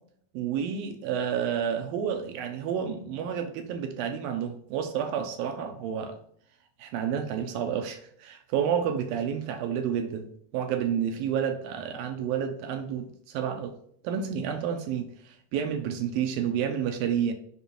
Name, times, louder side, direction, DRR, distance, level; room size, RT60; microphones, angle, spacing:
voice 1, 0.3-6.2 6.8-10.3 10.5-13.8 14.0-17.3, right 8 dB, 80° right, 2.4 m, -30 dB
6.2 x 5.4 x 4.3 m
omnidirectional pair, 4.3 m